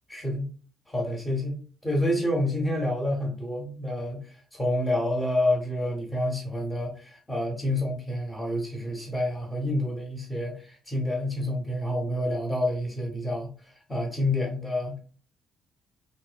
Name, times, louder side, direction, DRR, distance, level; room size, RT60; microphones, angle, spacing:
voice 1, 0.1-0.5 0.9-15.0, left 1 dB, 10° left, -2 dB, 0.8 m, -28 dB
2.5 x 2.0 x 2.4 m, 0.42 s
cardioid pair, 90°, 0 cm